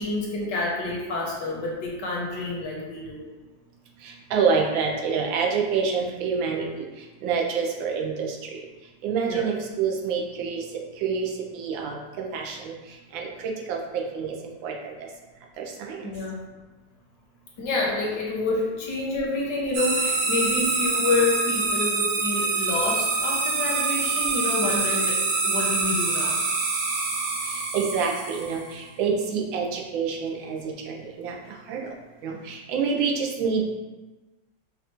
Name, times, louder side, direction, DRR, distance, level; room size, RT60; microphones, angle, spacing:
voice 1, 0.0-3.2 9.2-9.5 16.0-16.5 17.6-26.4, left 3 dB, 70° left, -3 dB, 1.4 m, -28 dB
voice 2, 4.0-6.9 7.2-8.4 9.0-10.6 11.0-12.7 13.1-14.3 14.6-14.7 15.6-16.0 27.7-31.4 31.7-31.9 32.2-33.7, right 5 dB, 90° right, 0 dB, 1.4 m, -27 dB
sound 1, 19.7-28.7, right 3 dB, 65° right, 1.3 m, -25 dB
5.4 x 2.4 x 3.0 m, 1.2 s
omnidirectional pair, 2.0 m